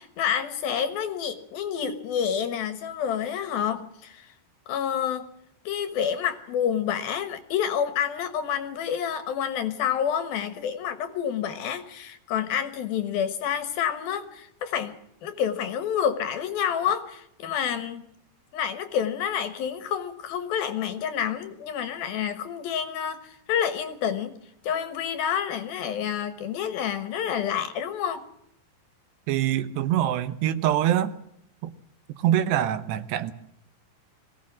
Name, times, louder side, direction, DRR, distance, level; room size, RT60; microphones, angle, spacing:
voice 1, 0.0-4.3 4.7-5.3 5.7-15.0 15.2-18.0 18.5-24.4 24.6-28.2, left 8 dB, 65° left, 11 dB, 2.6 m, -28 dB
voice 2, 29.3-31.1 31.6-31.7 32.2-33.3, right 11 dB, 75° right, 12 dB, 3.0 m, -24 dB
22.0 x 17.0 x 7.4 m, 0.74 s
omnidirectional pair, 5.1 m